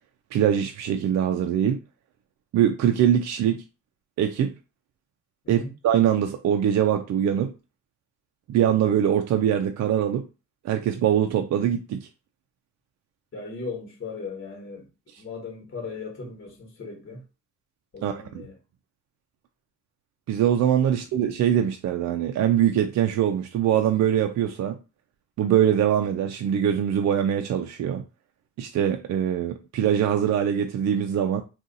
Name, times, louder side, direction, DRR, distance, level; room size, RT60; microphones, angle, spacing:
voice 1, 0.3-1.8 2.5-3.6 4.2-4.5 5.5-7.5 8.5-10.3 10.6-12.1 18.0-18.2 20.3-24.8 25.4-28.0 28.6-31.4, right 9 dB, 60° right, 0.5 m, -23 dB
voice 2, 13.3-14.9 15.2-17.2 17.9-18.6, left 4 dB, 40° left, 1.3 m, -37 dB
2.6 x 2.4 x 3.9 m
cardioid pair, 90°, 30 cm